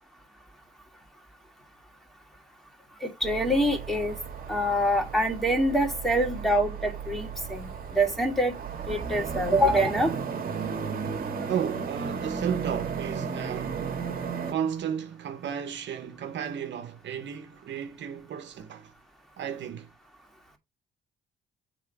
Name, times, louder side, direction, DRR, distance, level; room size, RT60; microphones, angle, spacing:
voice 1, 3.0-4.1 4.5-8.5 8.9-10.1, equal, ahead, 2.4 m, -25 dB
sound 1, 3.2-14.5, right 6 dB, 50° right, 1.6 m, -34 dB
voice 2, 11.5-13.9 14.5-18.9 19.4-19.9, right 8 dB, 65° right, 1.0 m, -33 dB
7.4 x 3.7 x 4.7 m
cardioid pair, 90°, 20 cm